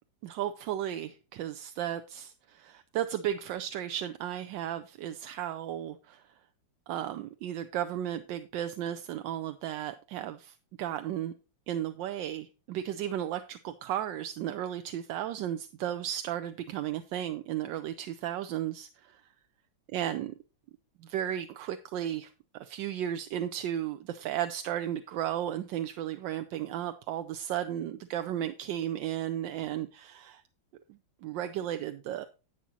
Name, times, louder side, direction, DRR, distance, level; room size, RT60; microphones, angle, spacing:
voice 1, 0.2-6.2 6.9-11.3 11.7-19.2 19.9-20.3 21.1-30.4 31.2-32.3, right 11 dB, 80° right, 9 dB, 1.3 m, -34 dB
11.0 x 8.4 x 2.8 m, 0.32 s
omnidirectional pair, 2.1 m